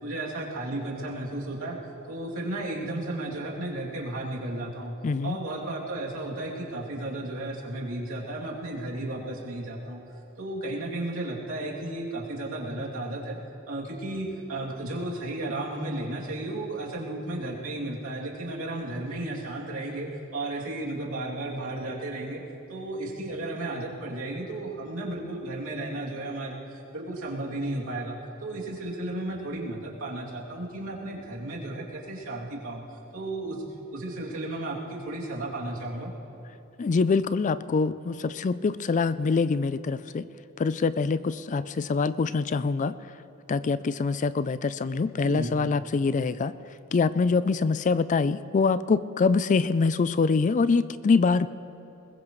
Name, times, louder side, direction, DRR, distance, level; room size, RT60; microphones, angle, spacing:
voice 1, 0.0-1.8 2.1-4.9 5.2-10.0 10.4-13.4 13.7-22.4 22.7-32.8 33.1-33.6 33.9-36.1 45.2-45.5, right 2 dB, 90° right, -4 dB, 2.8 m, -34 dB
voice 2, 5.0-5.4 36.8-40.3 40.6-42.9 43.5-46.5 46.9-51.5, left 4 dB, 35° left, 15 dB, 0.4 m, -24 dB
21.0 x 21.0 x 3.1 m, 3.0 s
head